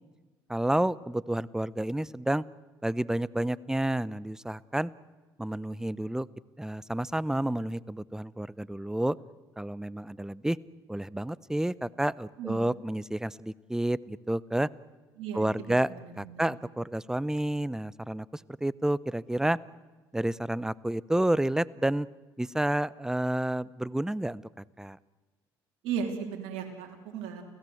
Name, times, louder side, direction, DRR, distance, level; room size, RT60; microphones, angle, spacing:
voice 1, 0.5-2.4 2.8-4.9 5.4-6.3 6.6-9.2 9.6-10.6 10.9-14.7 15.3-15.9 16.2-19.6 20.1-22.1 22.4-24.4 24.8-25.0, right 1 dB, 5° right, 20 dB, 0.7 m, -30 dB
voice 2, 12.4-12.7 15.2-16.5 25.8-27.4, right 7 dB, 75° right, 2 dB, 3.4 m, -36 dB
29.5 x 16.5 x 7.9 m, 1.3 s
supercardioid pair, 65°, 10 cm